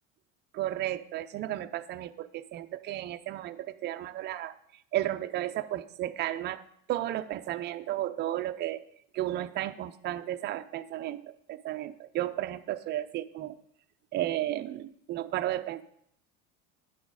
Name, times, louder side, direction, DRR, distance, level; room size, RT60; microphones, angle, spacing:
voice 1, 0.5-4.5 4.9-6.6 6.9-8.8 9.1-13.6 14.1-15.8, right 13 dB, 30° right, 9 dB, 0.5 m, -33 dB
10.0 x 6.2 x 4.8 m, 0.71 s
supercardioid pair, 140°, 35 cm